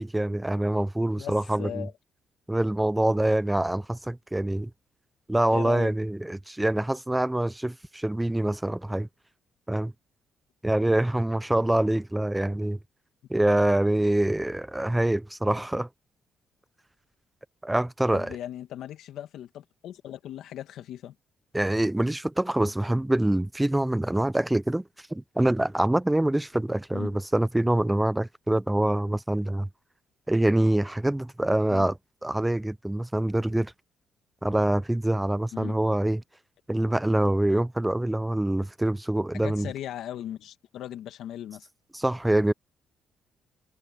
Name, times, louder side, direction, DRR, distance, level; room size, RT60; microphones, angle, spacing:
voice 1, 0.0-1.9 2.5-4.7 5.3-9.1 9.7-9.9 10.6-12.8 13.3-15.9 17.6-18.3 21.5-24.8 25.1-29.7 30.3-31.9 32.2-33.7 34.4-36.2 36.7-39.7 41.9-42.5, right 1 dB, 10° right, 0.4 m, -25 dB
voice 2, 1.2-1.9 5.5-5.9 18.1-21.2 26.9-27.2 31.7-31.9 35.5-35.8 39.3-41.7, left 11 dB, 80° left, 1.9 m, -38 dB
cardioid pair, 90°, 0 cm